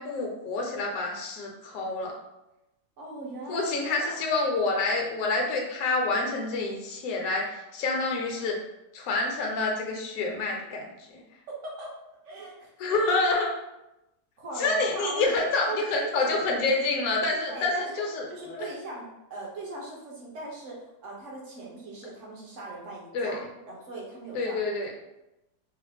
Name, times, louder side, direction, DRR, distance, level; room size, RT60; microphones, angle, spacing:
voice 1, 0.0-2.2 3.5-8.6 8.9-11.2 12.8-13.5 14.6-18.7 23.1-23.4 24.3-24.9, left 3 dB, 70° left, 0 dB, 1.1 m, -28 dB
voice 2, 3.0-4.1 11.5-11.9 12.2-13.0 14.4-15.4 15.7-16.4 17.5-18.0 18.3-23.4 23.7-24.9, right 2 dB, 55° right, -3 dB, 1.2 m, -39 dB
4.6 x 2.0 x 3.5 m, 0.92 s
omnidirectional pair, 1.7 m